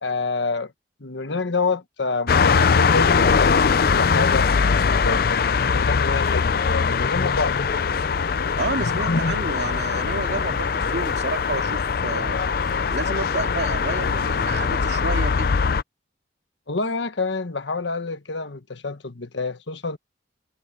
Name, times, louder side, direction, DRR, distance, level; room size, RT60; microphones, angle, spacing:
voice 1, 0.0-0.7 1.0-4.5 5.0-5.4 5.7-7.6 8.8-9.4 16.7-20.0, left 3 dB, 80° left, 1.3 m, -27 dB
sound 1, 2.3-15.8, left 5 dB, 55° left, 0.5 m, -21 dB
sound 2, 3.8-15.3, equal, 5° left, 7.2 m, -40 dB
voice 2, 8.6-12.4 12.9-15.5, right 3 dB, 65° right, 2.8 m, -30 dB
head